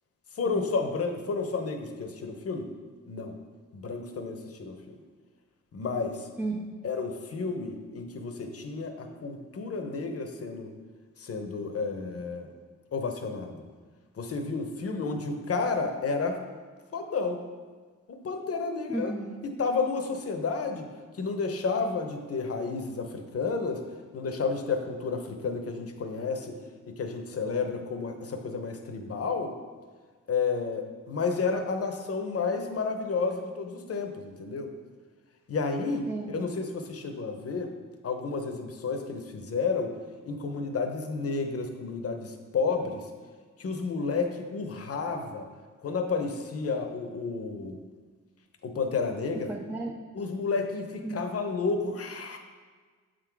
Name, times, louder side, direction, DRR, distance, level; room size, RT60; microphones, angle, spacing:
voice 1, 0.3-2.7 3.1-3.4 3.7-5.0 5.7-6.3 6.8-10.7 11.2-12.5 12.9-13.7 14.2-16.4 16.9-17.4 18.1-19.1 19.4-20.9 21.2-23.8 24.1-26.6 26.9-29.5 30.3-34.7 35.5-37.7 38.0-40.0 40.3-43.1 43.6-45.5 45.8-47.8 48.6-49.5 50.1-52.4, left 4 dB, 50° left, 5 dB, 0.8 m, -31 dB
voice 2, 6.4-6.8 18.9-19.3 36.1-36.3 49.5-49.9 51.0-51.2, right 2 dB, 5° right, 0 dB, 0.4 m, -33 dB
7.6 x 3.8 x 4.6 m, 1.5 s
wide cardioid pair, 120°, 31 cm